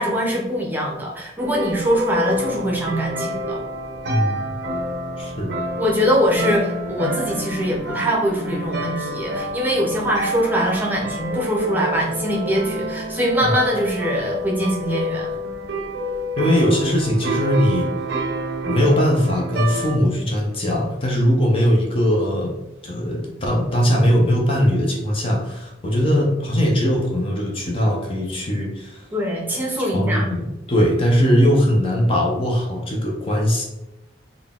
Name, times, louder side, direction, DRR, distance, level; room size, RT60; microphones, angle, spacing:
voice 1, 0.0-3.6 5.8-15.4 29.1-30.3, equal, 10° right, -2 dB, 0.7 m, -22 dB
sound 1, 1.4-20.0, right 1 dB, 60° right, 0.5 m, -28 dB
voice 2, 4.1-4.5 5.2-5.5 13.4-13.5 16.4-17.9 18.7-22.6 22.8-29.0 29.9-33.6, equal, 30° left, 0 dB, 0.6 m, -20 dB
3.9 x 2.2 x 3.6 m, 0.98 s
head